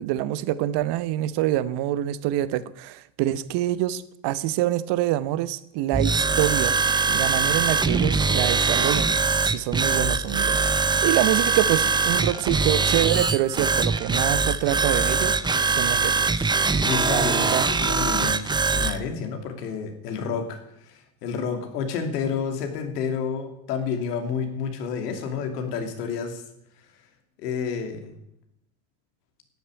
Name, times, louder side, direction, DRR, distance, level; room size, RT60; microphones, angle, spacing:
voice 1, 0.0-6.8 7.1-10.6 11.0-15.4 15.7-16.5 17.1-17.6, right 14 dB, 60° right, 16 dB, 1.0 m, -26 dB
sound 1, 5.9-19.0, right 4 dB, 10° right, 0.6 m, -22 dB
voice 2, 16.8-26.4 27.4-28.1, left 6 dB, 85° left, 5 dB, 2.8 m, -30 dB
12.0 x 8.9 x 8.9 m, 0.78 s
supercardioid pair, 100°, 47 cm